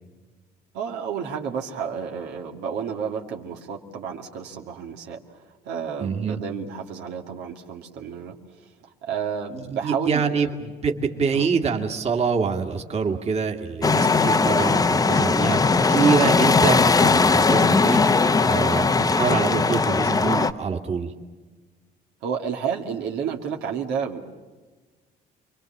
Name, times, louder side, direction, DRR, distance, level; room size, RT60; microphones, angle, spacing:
voice 1, 0.7-5.2 5.6-8.4 9.0-10.5 11.3-11.5 22.2-24.2, right 7 dB, 85° right, 1 dB, 2.5 m, -31 dB
voice 2, 6.0-6.4 9.5-18.0 18.4-21.1, right 5 dB, 40° right, 3 dB, 2.2 m, -25 dB
sound 1, 13.8-20.5, left 4 dB, 20° left, 0.9 m, -19 dB
29.0 x 23.0 x 7.3 m, 1.3 s
cardioid pair, 110°, 17 cm